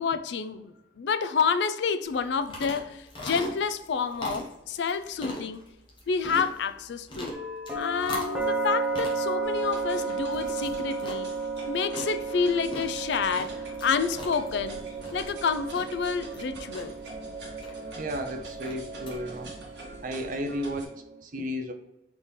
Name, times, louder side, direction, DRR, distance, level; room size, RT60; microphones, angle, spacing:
voice 1, 0.0-5.6 6.1-7.3 7.7-11.3 11.7-14.8 15.1-16.9, left 5 dB, 65° left, 11 dB, 0.4 m, -29 dB
sound 1, 2.0-19.1, left 1 dB, 25° left, 1.0 m, -41 dB
sound 2, 7.3-21.2, right 3 dB, 5° right, 0.8 m, -34 dB
sound 3, 9.4-20.8, right 3 dB, 65° right, 1.3 m, -43 dB
voice 2, 17.9-19.5 20.0-21.7, equal, 45° right, 5 dB, 0.6 m, -33 dB
4.1 x 3.6 x 3.2 m, 0.91 s
head